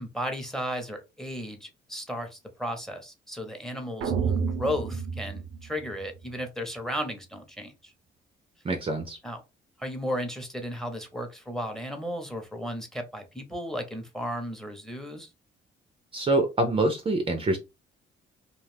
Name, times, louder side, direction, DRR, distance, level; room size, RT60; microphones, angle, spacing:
voice 1, 0.0-7.9 9.2-9.4 9.8-15.3, equal, ahead, 6 dB, 0.8 m, -34 dB
sound 1, 4.0-6.3, right 6 dB, 80° right, 0.5 m, -30 dB
voice 2, 8.6-9.2 16.1-17.6, right 2 dB, 30° right, 6 dB, 0.5 m, -25 dB
2.4 x 2.4 x 3.3 m, 0.25 s
cardioid pair, 90°, 20 cm